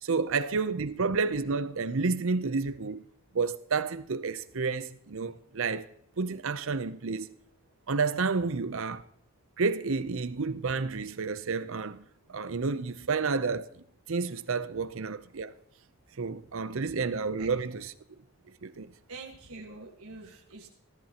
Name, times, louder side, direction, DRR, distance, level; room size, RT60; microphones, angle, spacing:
voice 1, 0.0-3.0 3.3-5.9 6.2-7.3 7.9-9.0 9.6-13.7 14.1-15.5 16.2-17.9 18.6-18.9, right 4 dB, 65° right, 0.6 m, -30 dB
voice 2, 17.4-17.8 19.1-20.7, right 3 dB, 80° right, 1.6 m, -45 dB
18.5 x 13.0 x 2.9 m
head